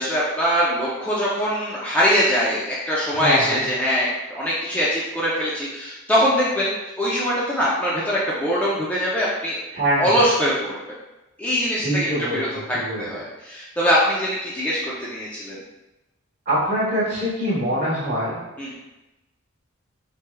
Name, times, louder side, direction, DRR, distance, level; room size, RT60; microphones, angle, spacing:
voice 1, 0.0-9.5 10.0-10.8 11.4-15.6 18.6-18.7, equal, 5° left, -7 dB, 0.4 m, -22 dB
voice 2, 3.1-3.6 9.7-10.2 11.8-13.2 16.5-18.3, equal, 40° right, -9 dB, 1.0 m, -24 dB
4.4 x 3.3 x 2.2 m, 1.0 s
head